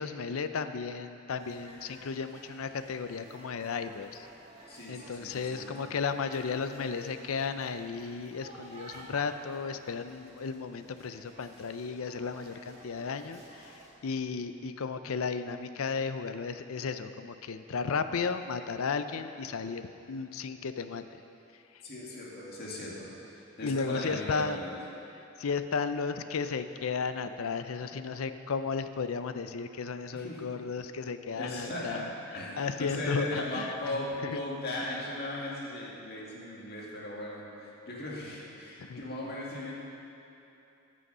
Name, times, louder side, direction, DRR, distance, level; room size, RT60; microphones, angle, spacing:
voice 1, 0.0-4.3 4.9-13.4 14.0-21.0 23.6-24.6 25.4-32.1 32.6-33.7 34.2-34.4 38.8-39.0, left 5 dB, 80° left, 10 dB, 0.5 m, -34 dB
sound 1, 1.4-13.9, right 1 dB, 30° right, 1.7 m, -52 dB
voice 2, 4.7-5.9 21.8-24.8 30.1-30.4 31.4-39.7, left 1 dB, 50° left, -4 dB, 2.1 m, -38 dB
14.5 x 6.4 x 5.5 m, 2.9 s
head